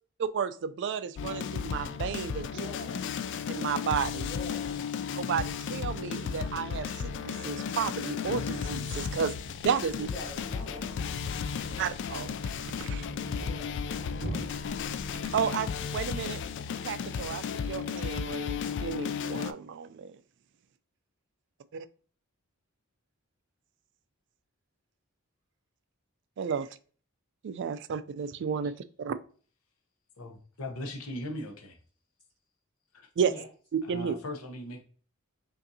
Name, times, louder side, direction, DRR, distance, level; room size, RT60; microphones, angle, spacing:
voice 1, 0.2-2.5 3.5-4.3 5.2-9.3 9.6-10.1 11.8-12.3 12.8-13.1 15.2-16.4 16.8-20.2 21.7-21.9 26.4-26.7 27.4-29.2 33.2-33.3 33.7-34.2, right 7 dB, 55° right, 13 dB, 0.3 m, -32 dB
sound 1, 1.2-19.5, left 6 dB, 60° left, 0.3 m, -34 dB
voice 2, 2.4-3.1 4.2-4.8 9.9-11.8 13.3-14.4 33.3-33.4, left 2 dB, 20° left, -8 dB, 1.2 m, -44 dB
Thump thud, 9.3-15.5, right 1 dB, 30° right, 0.9 m, -44 dB
voice 3, 30.2-31.8 32.9-33.1 33.8-34.8, left 1 dB, 85° left, 4 dB, 0.8 m, -39 dB
5.2 x 2.6 x 2.7 m, 0.41 s
head